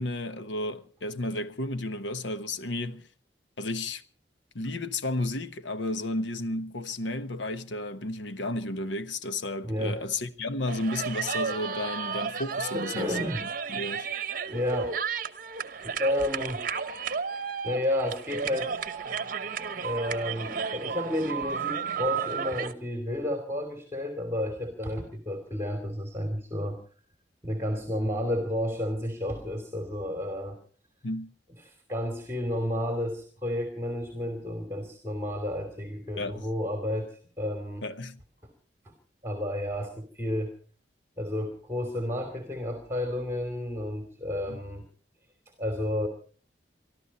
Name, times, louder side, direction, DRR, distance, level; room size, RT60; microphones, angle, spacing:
voice 1, 0.0-3.1 3.6-4.0 4.5-14.1 31.0-31.3 36.2-36.4 37.8-38.2 44.5-44.6, left 2 dB, 85° left, 1.2 m, -33 dB
voice 2, 9.6-10.0 12.7-13.4 14.5-15.0 15.8-16.6 17.6-18.8 19.8-26.8 27.4-30.6 31.6-37.9 38.4-38.5 38.8-38.9 39.2-40.5 41.2-44.9 45.6-46.1, left 1 dB, 15° right, 2.8 m, -31 dB
sound 1, 10.7-22.7, right 6 dB, 50° right, 1.0 m, -33 dB
24.0 x 14.0 x 4.3 m
head